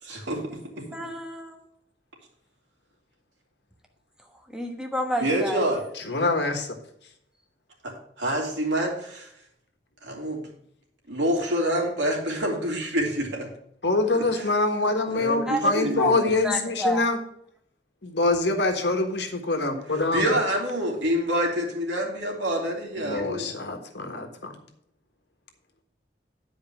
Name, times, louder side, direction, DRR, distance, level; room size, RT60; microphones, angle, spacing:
voice 1, 0.0-0.9 5.2-5.8 7.8-9.3 10.0-10.4 11.1-13.5 14.2-14.4 15.1-16.3 20.1-23.5, right 1 dB, 85° right, 0 dB, 2.7 m, -27 dB
voice 2, 0.9-1.6 4.5-5.7 15.5-17.1 23.1-23.2, equal, 5° right, 2 dB, 1.2 m, -30 dB
voice 3, 6.0-6.8 13.8-17.2 18.0-20.3 23.0-24.5, left 2 dB, 70° left, 4 dB, 1.5 m, -25 dB
9.9 x 5.0 x 6.0 m, 0.73 s
head